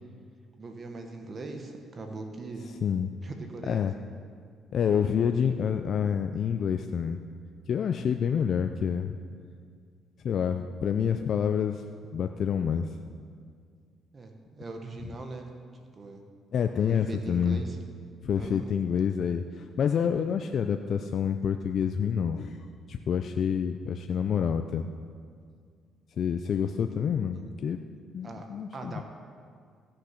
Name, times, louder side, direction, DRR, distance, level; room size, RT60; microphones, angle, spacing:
voice 1, 0.6-2.7 3.2-3.9 14.1-15.5 15.9-16.2 16.9-17.8 18.4-18.6 27.3-27.5 28.2-28.4 28.7-29.0, right 3 dB, 35° right, 4 dB, 1.3 m, -40 dB
voice 2, 4.7-7.2 7.7-9.2 10.2-11.8 12.1-12.9 16.5-17.6 18.2-24.9 26.2-27.8 28.1-29.0, left 7 dB, 60° left, 6 dB, 0.5 m, -28 dB
16.0 x 6.5 x 5.9 m, 2.1 s
cardioid pair, 95°, 0 cm